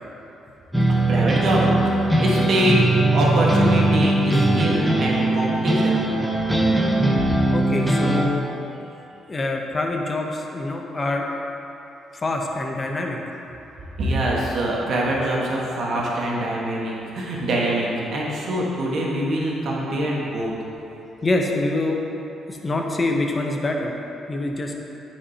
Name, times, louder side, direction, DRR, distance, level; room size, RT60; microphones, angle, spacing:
sound 1, 0.7-8.2, right 1 dB, ahead, 0.9 m, -20 dB
voice 1, 1.1-6.1 14.0-20.5, right 1 dB, 60° right, -4 dB, 1.4 m, -24 dB
voice 2, 7.5-8.5 9.3-11.3 12.1-13.2 21.2-22.0 22.5-24.0 24.3-24.7, left 2 dB, 30° left, 1 dB, 0.8 m, -25 dB
9.6 x 4.9 x 2.8 m, 3.0 s
cardioid pair, 90°, 0 cm